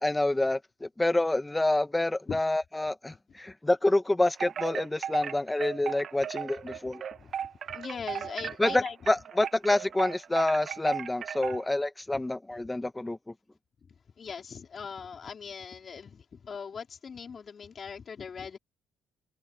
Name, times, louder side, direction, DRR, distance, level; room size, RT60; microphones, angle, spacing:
voice 1, 0.0-7.0 8.6-13.2, left 2 dB, 10° left, 1.3 m, -27 dB
Wind chime, 4.3-11.7, right 8 dB, 50° right, 1.1 m, -36 dB
voice 2, 7.7-9.0 14.2-18.6, left 6 dB, 40° left, 4.2 m, -40 dB
cardioid pair, 105°, 0 cm